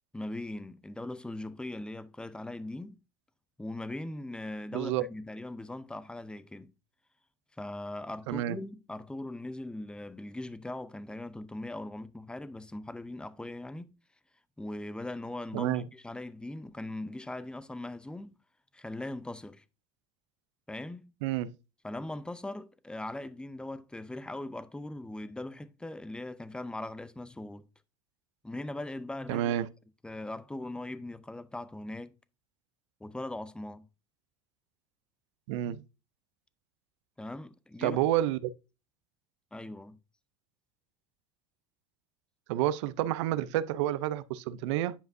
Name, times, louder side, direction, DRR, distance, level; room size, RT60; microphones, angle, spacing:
voice 1, 0.1-3.0 3.6-6.7 7.6-13.9 14.6-18.3 18.7-19.6 20.7-21.1 21.8-27.7 28.4-29.5 30.0-32.1 33.0-33.9 37.2-38.0 39.5-40.0, left 1 dB, 5° left, 0.6 m, -40 dB
voice 2, 15.5-15.8 21.2-21.5 29.3-29.7 35.5-35.8 37.8-38.4 42.5-44.9, right 13 dB, 80° right, 0.5 m, -29 dB
9.9 x 5.1 x 2.6 m
supercardioid pair, 95°, 15 cm